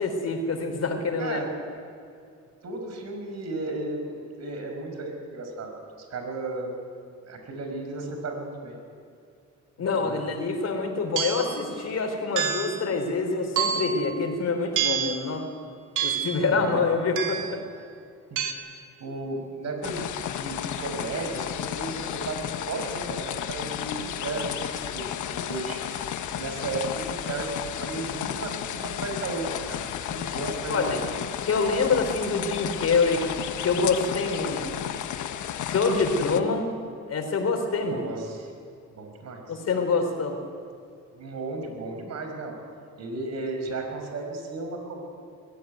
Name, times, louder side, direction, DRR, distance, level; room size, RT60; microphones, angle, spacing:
voice 1, 0.0-1.5 9.8-15.5 16.0-17.6 30.7-31.0 31.5-33.2 33.6-34.9 35.6-36.7 37.1-38.1 39.5-40.4, left 4 dB, 55° left, 5 dB, 4.2 m, -26 dB
voice 2, 2.6-5.7 6.0-6.7 7.2-8.8 9.8-10.2 16.5-16.8 18.3-18.7 19.0-25.8 26.3-31.0 37.9-38.5 39.0-39.4 41.1-42.5 43.0-45.0, right 2 dB, 60° right, 3 dB, 5.6 m, -34 dB
sound 1, 11.2-11.6 12.4-12.8 13.6-14.0 14.8-15.2 16.0-16.4 17.2-17.6 18.4-18.5, right 8 dB, 85° right, 2.2 m, -27 dB
sound 2, 19.8-36.4, left 10 dB, 75° left, 1.3 m, -33 dB
22.0 x 16.0 x 9.6 m, 2.5 s
cardioid pair, 90°, 30 cm